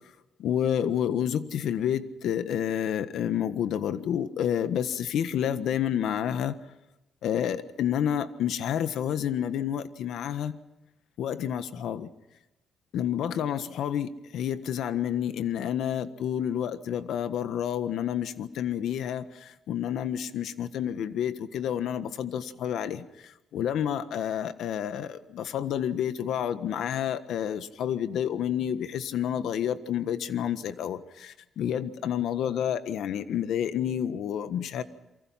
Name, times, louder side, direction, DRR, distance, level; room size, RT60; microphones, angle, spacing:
voice 1, 0.4-6.6 7.2-10.5 11.2-12.1 12.9-19.2 19.7-23.0 23.5-34.8, left 9 dB, 80° left, 11 dB, 1.4 m, -29 dB
28.5 x 23.5 x 5.9 m, 0.99 s
cardioid pair, 110°, 0 cm